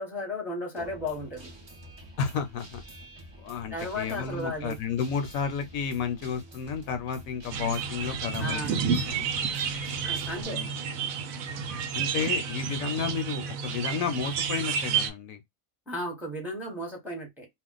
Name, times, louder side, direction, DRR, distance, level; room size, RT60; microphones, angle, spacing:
voice 1, 0.0-1.5 3.7-4.8 8.4-8.8 10.0-10.6 15.9-17.5, left 1 dB, ahead, 0.8 m, -34 dB
Guitar, 0.8-10.4, right 1 dB, 35° right, 0.4 m, -47 dB
voice 2, 2.2-2.8 3.4-9.3 10.4-10.9 11.9-15.4, left 6 dB, 75° left, 1.0 m, -32 dB
sound 1, 7.5-15.1, right 6 dB, 75° right, 1.0 m, -30 dB
2.4 x 2.1 x 3.8 m
omnidirectional pair, 1.5 m